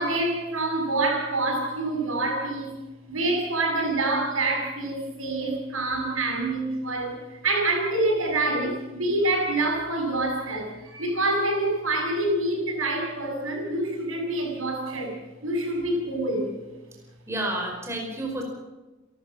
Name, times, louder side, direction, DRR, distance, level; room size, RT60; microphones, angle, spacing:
voice 1, 0.0-2.7 3.1-7.2 7.4-16.5, right 2 dB, 85° right, 2 dB, 7.0 m, -26 dB
voice 2, 17.3-18.4, right 1 dB, 15° right, 1 dB, 5.1 m, -30 dB
30.0 x 13.0 x 7.3 m, 1.1 s
head